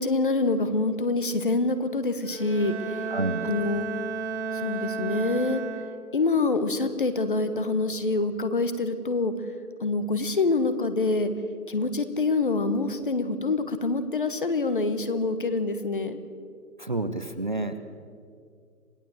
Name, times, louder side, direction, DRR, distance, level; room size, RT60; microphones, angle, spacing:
voice 1, 0.0-3.1 3.4-3.9 4.5-5.6 6.1-9.3 9.8-11.3 11.7-16.2, left 3 dB, 35° left, 10 dB, 1.3 m, -26 dB
Bowed string instrument, 2.2-6.3, right 5 dB, 45° right, 2.0 m, -33 dB
voice 2, 3.1-3.5 16.8-17.9, right 2 dB, 30° right, 10 dB, 0.8 m, -30 dB
27.5 x 16.5 x 7.8 m, 2.2 s
figure-of-eight pair, 165°, 47 cm